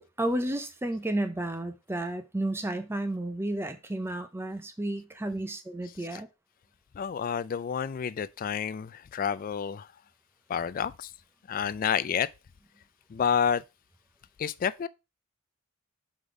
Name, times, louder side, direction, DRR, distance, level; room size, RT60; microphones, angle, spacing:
voice 1, 0.0-6.3, right 1 dB, 10° right, 0.5 m, -32 dB
voice 2, 7.0-9.9 10.5-11.1 11.5-12.3 13.1-13.6 14.4-14.9, left 7 dB, 40° left, 0.3 m, -29 dB
5.0 x 4.0 x 4.8 m
head